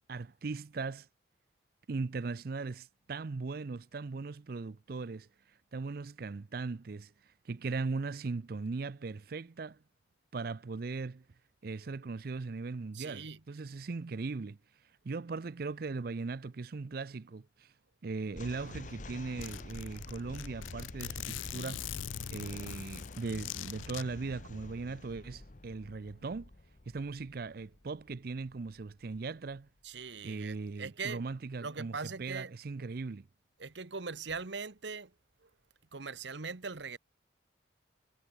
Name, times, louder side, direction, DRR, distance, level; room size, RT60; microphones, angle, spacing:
voice 1, 0.1-1.1 1.9-9.8 10.3-11.2 11.6-14.6 15.0-17.7 18.0-21.9 22.3-26.5 26.9-29.7 30.2-33.3, right 4 dB, 50° right, 0.5 m, -39 dB
voice 2, 12.9-13.4 29.8-31.2 31.6-32.5 33.6-35.1 35.4-35.5 35.9-37.0, right 5 dB, 70° right, 1.2 m, -41 dB
sound 1, 18.3-29.6, left 2 dB, 40° left, 1.1 m, -48 dB
Zipper (clothing), 18.6-18.7 19.0-19.1 19.4-24.0, left 10 dB, 90° left, 0.5 m, -42 dB
head